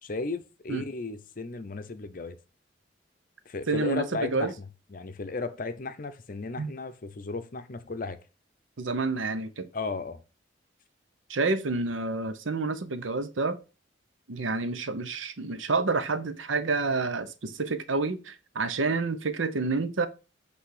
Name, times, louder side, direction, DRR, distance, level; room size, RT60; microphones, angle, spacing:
voice 1, 0.0-2.4 3.5-8.2 9.7-10.2, left 3 dB, 45° left, 0.6 m, -35 dB
voice 2, 3.7-4.5 6.6-6.7 8.8-9.7 11.3-13.6 14.3-20.1, right 3 dB, 85° right, 0.8 m, -29 dB
8.1 x 3.4 x 4.8 m
head